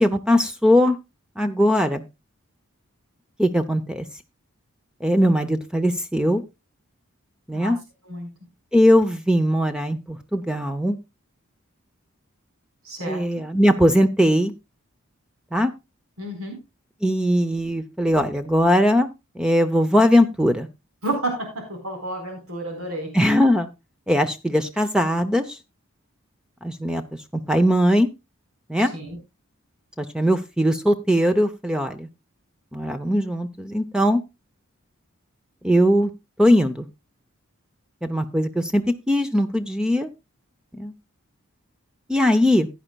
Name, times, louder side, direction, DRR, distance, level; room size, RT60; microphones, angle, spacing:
voice 1, 0.0-1.0 1.4-2.0 3.4-4.0 5.0-6.4 7.5-7.8 8.7-11.0 13.0-14.5 15.5-15.7 17.0-19.1 19.4-20.7 23.1-23.7 24.1-25.6 26.6-27.0 27.3-28.1 28.7-28.9 30.0-32.1 32.7-34.2 35.6-36.1 36.4-36.9 38.0-40.1 40.7-40.9 42.1-42.7, equal, 5° right, 9 dB, 0.6 m, -20 dB
voice 2, 12.8-13.2 16.2-16.6 21.0-23.1 28.9-29.2, right 1 dB, 80° right, 3 dB, 4.3 m, -30 dB
16.0 x 9.9 x 2.3 m, 0.24 s
head